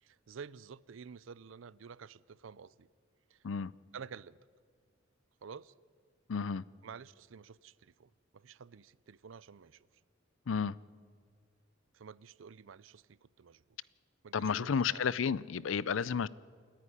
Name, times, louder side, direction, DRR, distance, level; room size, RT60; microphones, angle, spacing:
voice 1, 0.0-2.9 3.3-3.4 3.9-4.4 5.4-5.7 6.8-9.9 11.9-13.6 14.2-15.1 15.5-16.2, right 6 dB, 75° right, 0.5 m, -51 dB
voice 2, 6.3-6.6 10.5-10.8 14.3-16.3, left 6 dB, 75° left, 0.5 m, -32 dB
28.5 x 10.0 x 9.8 m
head